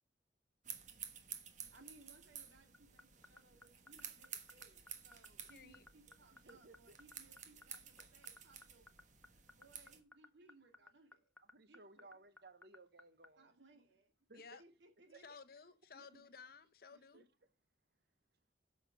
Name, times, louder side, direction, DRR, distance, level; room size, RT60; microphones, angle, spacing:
sound 1, 0.6-10.0, right 8 dB, 40° right, 1.3 m, -53 dB
voice 1, 1.7-8.9 9.6-11.3 11.7-12.2 13.4-15.3 15.9-16.2 16.9-17.2, right 2 dB, 80° right, 2.1 m, -66 dB
sound 2, 2.7-13.3, left 2 dB, 5° left, 0.6 m, -58 dB
voice 2, 5.5-5.9 14.3-14.6 15.1-17.3, left 5 dB, 55° left, 0.8 m, -56 dB
voice 3, 6.3-7.0 10.2-10.3 11.4-13.5 14.3-14.6 15.1-15.2 17.1-17.2, right 3 dB, 60° right, 0.8 m, -60 dB
9.1 x 6.4 x 5.5 m
head